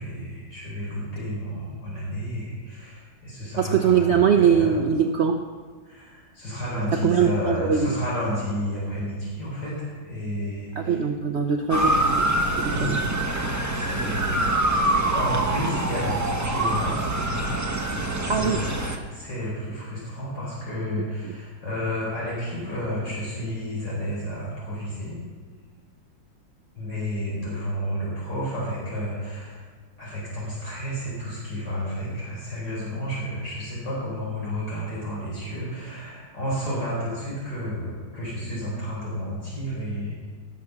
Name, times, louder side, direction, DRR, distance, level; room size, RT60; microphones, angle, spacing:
voice 1, 0.0-4.8 5.8-11.0 11.7-11.9 12.5-13.2 13.7-18.6 19.1-25.2 26.7-29.6 30.0-40.3, equal, 70° left, -6 dB, 4.8 m, -31 dB
voice 2, 3.6-5.4 7.0-7.9 10.8-12.2 12.5-13.0 18.3-18.6, right 7 dB, 70° right, 5 dB, 0.6 m, -22 dB
Motor vehicle (road) / Siren, 11.7-19.0, right 1 dB, 15° right, 0.6 m, -25 dB
18.5 x 7.6 x 6.0 m, 1.5 s
omnidirectional pair, 2.0 m